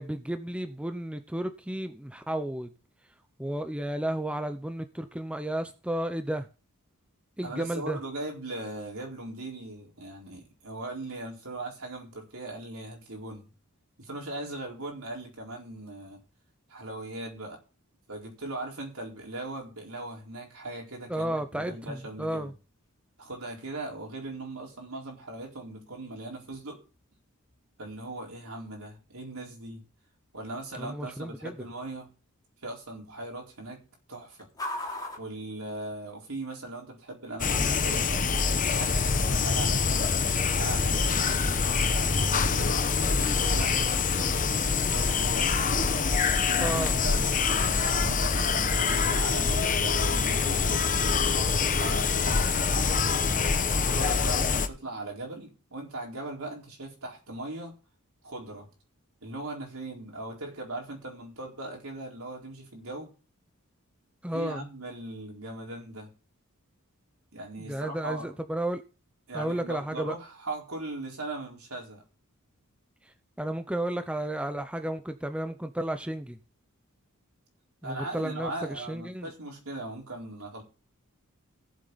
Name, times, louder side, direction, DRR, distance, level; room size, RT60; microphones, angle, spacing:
voice 1, 0.0-2.7 3.4-6.5 7.4-8.0 21.1-22.5 30.7-31.5 46.6-47.0 64.2-64.7 67.5-68.8 69.3-70.2 73.4-76.4 77.8-79.3, right 1 dB, 5° right, 0.6 m, -32 dB
voice 2, 7.4-13.5 14.0-16.2 16.7-17.6 18.1-22.5 23.2-26.8 27.8-29.8 30.3-32.1 32.6-33.8 34.1-34.5 35.2-38.2 38.6-40.1 40.6-45.5 46.5-52.7 53.8-57.7 58.2-58.7 59.2-63.1 64.3-66.1 67.3-68.3 69.3-72.0 77.8-80.6, right 2 dB, 70° right, 4.4 m, -39 dB
sound 1, 21.6-36.4, left 1 dB, 20° left, 2.8 m, -47 dB
sound 2, 37.4-54.7, left 5 dB, 40° left, 0.9 m, -25 dB
17.0 x 7.6 x 4.0 m
head